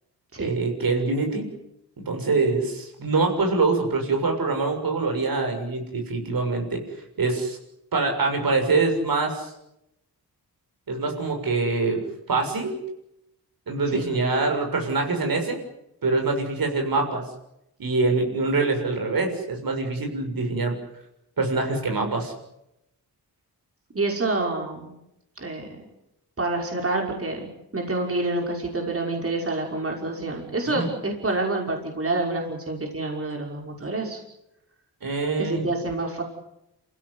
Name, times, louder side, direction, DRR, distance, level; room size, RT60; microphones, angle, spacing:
voice 1, 0.4-1.5 2.0-6.8 7.2-7.6 7.9-9.5 10.9-12.8 13.7-15.6 16.0-17.2 17.8-20.7 21.4-22.3 30.6-30.9 35.0-35.7, right 3 dB, 65° right, 3 dB, 6.9 m, -24 dB
voice 2, 23.9-24.9 25.4-25.9 26.4-34.2 35.4-36.2, right 2 dB, 35° right, 1 dB, 5.6 m, -28 dB
28.0 x 16.5 x 9.8 m, 0.85 s
cardioid pair, 85°, 38 cm